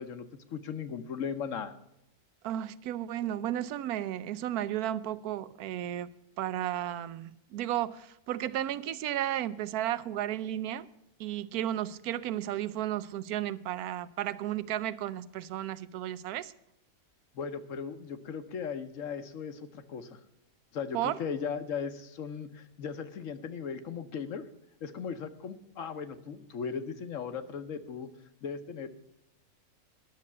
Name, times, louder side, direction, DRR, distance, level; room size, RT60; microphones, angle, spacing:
voice 1, 0.0-1.8 17.3-20.2 20.7-24.5 24.8-28.1 28.4-28.9, left 6 dB, 65° left, 1.1 m, -37 dB
voice 2, 2.4-6.1 6.4-10.9 11.2-16.5 20.9-21.2, right 12 dB, 85° right, 1.1 m, -33 dB
11.0 x 6.6 x 8.3 m
omnidirectional pair, 1.5 m